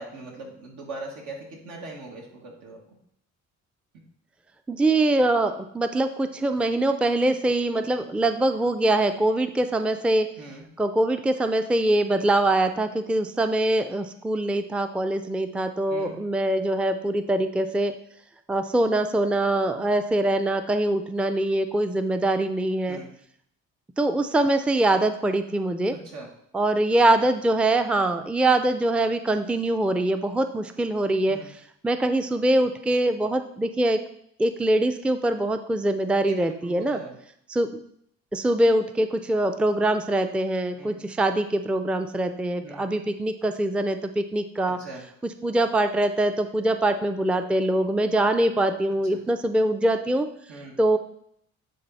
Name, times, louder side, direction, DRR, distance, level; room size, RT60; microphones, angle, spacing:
voice 1, 0.0-2.8 10.4-10.6 15.9-16.2 22.9-23.1 25.9-26.3 31.3-31.5 36.3-37.1 40.8-41.0 42.6-42.9 44.7-45.0 49.1-49.2 50.5-50.7, right 2 dB, 85° right, -1 dB, 2.1 m, -40 dB
voice 2, 4.7-10.3 10.8-18.0 18.5-23.0 24.0-26.0 26.5-31.4 31.8-34.0 34.4-37.0 37.5-37.7 38.3-44.8 45.4-50.3 50.8-51.0, right 1 dB, 5° right, 8 dB, 0.4 m, -23 dB
10.0 x 3.8 x 4.2 m, 0.70 s
cardioid pair, 90°, 30 cm